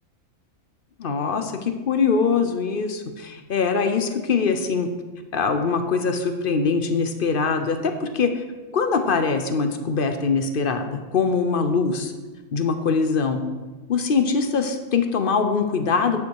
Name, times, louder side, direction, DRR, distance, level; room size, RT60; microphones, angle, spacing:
voice 1, 1.0-4.9 5.3-8.4 8.7-12.1 12.5-13.4 13.9-16.2, left 5 dB, 50° left, 7 dB, 0.8 m, -23 dB
9.7 x 6.9 x 4.7 m, 1.3 s
omnidirectional pair, 1.4 m